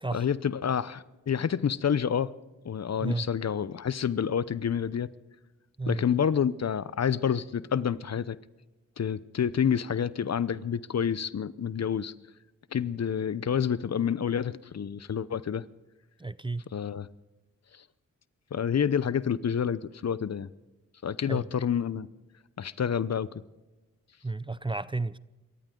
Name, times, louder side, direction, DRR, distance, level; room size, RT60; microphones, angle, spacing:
voice 1, 0.1-2.3 2.6-5.1 5.9-8.4 9.0-12.1 12.7-15.6 16.7-17.1 18.5-20.5 21.0-22.1 22.6-23.3, left 8 dB, 50° left, 0.8 m, -28 dB
voice 2, 16.2-16.6 21.2-21.5 24.2-25.2, right 3 dB, 15° right, 0.6 m, -32 dB
27.0 x 14.0 x 3.8 m
cardioid pair, 45°, 33 cm